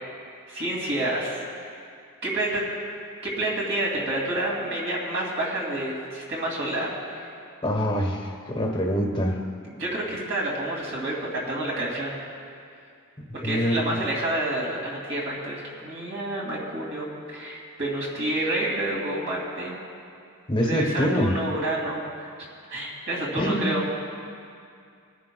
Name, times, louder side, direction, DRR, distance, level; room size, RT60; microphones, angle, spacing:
voice 1, 0.5-1.7 2.2-2.6 3.2-7.3 9.8-12.1 13.3-19.8 20.6-22.3 22.7-23.8, right 1 dB, 55° right, -3 dB, 2.5 m, -29 dB
voice 2, 7.6-9.4 13.4-14.0 20.5-21.4 23.4-23.7, equal, 20° left, 1 dB, 1.2 m, -25 dB
27.5 x 10.0 x 2.3 m, 2.4 s
head